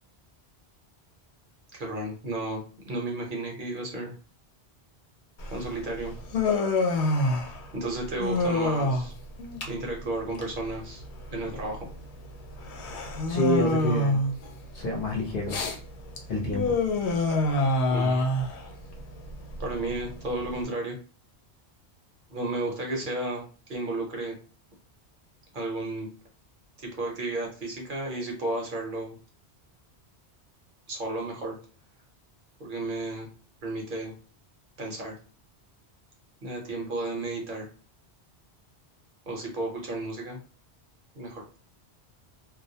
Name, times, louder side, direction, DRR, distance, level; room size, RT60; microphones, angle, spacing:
voice 1, 1.7-4.1 5.5-6.2 7.7-9.1 9.7-11.0 11.3-11.9 17.9-18.3 19.6-21.0 22.3-24.4 25.5-26.1 26.8-29.2 30.9-31.6 32.6-33.3 33.6-34.1 34.8-35.1 36.4-37.7 39.3-40.4 41.1-41.4, right 2 dB, 55° right, -1 dB, 0.8 m, -33 dB
Human voice, 5.4-20.6, left 2 dB, 85° left, 0.9 m, -28 dB
voice 2, 13.3-14.2 14.7-15.6 16.3-16.8, left 1 dB, 55° left, -1 dB, 0.8 m, -27 dB
2.3 x 2.1 x 2.7 m, 0.39 s
omnidirectional pair, 1.1 m